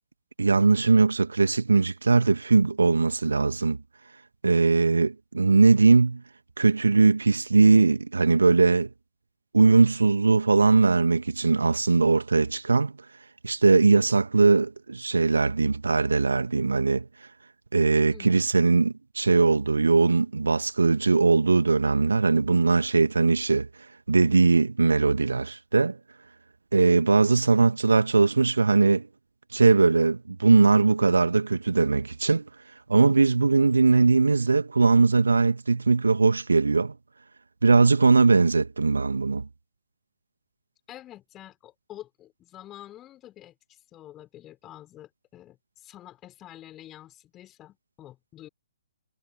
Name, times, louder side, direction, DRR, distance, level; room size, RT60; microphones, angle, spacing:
voice 1, 0.4-3.8 4.4-6.2 6.6-8.9 9.5-12.9 13.4-17.1 17.7-23.7 24.1-26.0 26.7-29.1 29.5-32.5 32.9-36.9 37.6-39.4, right 4 dB, 70° right, 1.6 m, -20 dB
voice 2, 40.9-48.5, left 13 dB, 20° left, 4.3 m, -47 dB
figure-of-eight pair, 130°, 0 cm